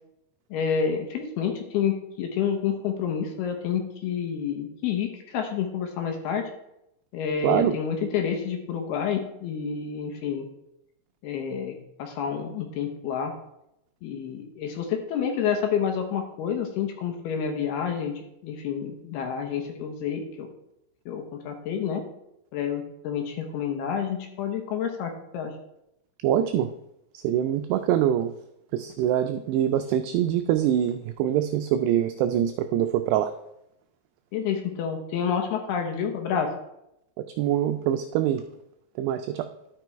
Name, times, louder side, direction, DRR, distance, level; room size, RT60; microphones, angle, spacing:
voice 1, 0.5-6.5 7.1-10.5 11.2-11.7 12.0-13.3 14.0-18.1 18.4-20.5 21.1-22.0 22.5-25.5 34.3-36.5, left 7 dB, 70° left, 4 dB, 2.6 m, -29 dB
voice 2, 7.4-7.8 26.2-26.7 27.2-28.3 28.7-33.3 37.4-38.4 39.0-39.5, right 11 dB, 90° right, 9 dB, 2.3 m, -24 dB
11.5 x 6.1 x 4.5 m, 0.82 s
omnidirectional pair, 5.3 m